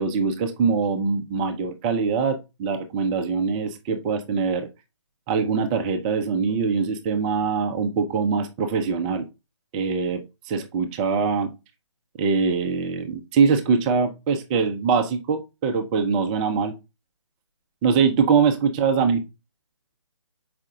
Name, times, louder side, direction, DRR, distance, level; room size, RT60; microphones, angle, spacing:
voice 1, 0.0-4.7 5.3-9.3 9.7-11.5 12.2-16.7 17.8-19.2, right 5 dB, 15° right, 6 dB, 0.7 m, -23 dB
7.4 x 5.1 x 3.6 m, 0.26 s
figure-of-eight pair, 145°, 16 cm